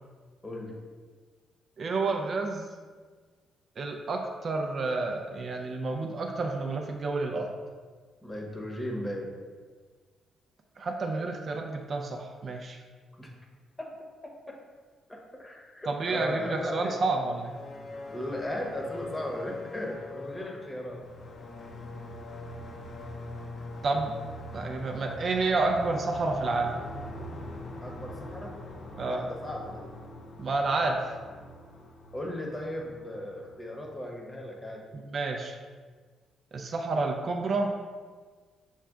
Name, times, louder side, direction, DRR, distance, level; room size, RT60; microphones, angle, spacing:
voice 1, 1.8-2.7 3.8-7.5 10.8-12.8 15.9-17.6 23.8-24.1 24.5-26.8 29.0-29.2 30.4-31.1 34.9-35.6 36.5-37.7, right 3 dB, 50° right, 2 dB, 0.4 m, -30 dB
voice 2, 8.2-9.3 13.2-13.3 13.8-13.9 14.5-14.6 15.1-17.0 18.1-21.0 27.8-28.5 29.0-29.8 32.1-34.8, left 1 dB, 15° left, -1 dB, 0.9 m, -36 dB
sound 1, 17.2-34.0, left 2 dB, 50° left, 0.6 m, -42 dB
6.2 x 2.2 x 3.5 m, 1.5 s
cardioid pair, 90°, 0 cm